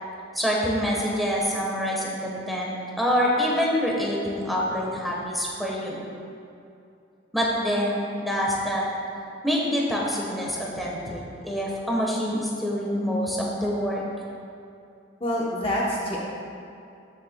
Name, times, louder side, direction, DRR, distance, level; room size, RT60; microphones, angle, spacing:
voice 1, 0.3-6.0 7.3-8.8 9.4-14.0, equal, ahead, -4 dB, 1.1 m, -26 dB
voice 2, 15.2-16.2, left 1 dB, 30° left, -4 dB, 0.9 m, -26 dB
13.0 x 6.9 x 2.2 m, 2.6 s
head